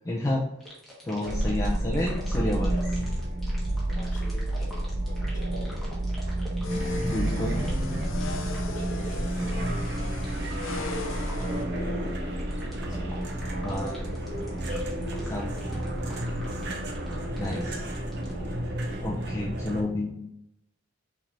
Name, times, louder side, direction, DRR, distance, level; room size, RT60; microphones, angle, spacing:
voice 1, 0.0-0.4 1.0-3.0 7.0-7.6 13.6-13.9 15.3-15.5 17.4-17.8 18.7-20.3, left 1 dB, 15° left, -4 dB, 0.5 m, -30 dB
sound 1, 0.6-19.3, left 1 dB, ahead, 1.5 m, -46 dB
sound 2, 1.3-19.8, right 1 dB, 60° right, 0.7 m, -30 dB
voice 2, 3.9-5.8 8.8-12.2 12.8-13.6 14.2-15.1 18.4-19.0, equal, 40° left, -2 dB, 1.5 m, -47 dB
sound 3, 6.6-11.6, left 3 dB, 70° left, 0.5 m, -38 dB
5.9 x 3.3 x 2.6 m, 0.79 s
head